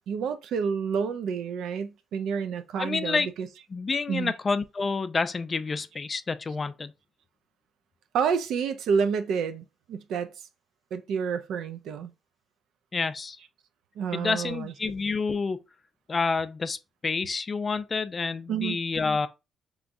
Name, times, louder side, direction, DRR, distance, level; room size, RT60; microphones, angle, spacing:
voice 1, 0.1-3.5 4.1-4.3 8.1-10.3 10.9-12.1 14.0-14.7 18.5-18.8, right 6 dB, 80° right, 0.4 m, -29 dB
voice 2, 2.8-3.3 3.7-6.9 12.9-13.4 14.1-15.6 16.1-16.8 17.0-19.3, left 4 dB, 35° left, 0.3 m, -28 dB
3.5 x 3.0 x 2.5 m
cardioid pair, 90°, 0 cm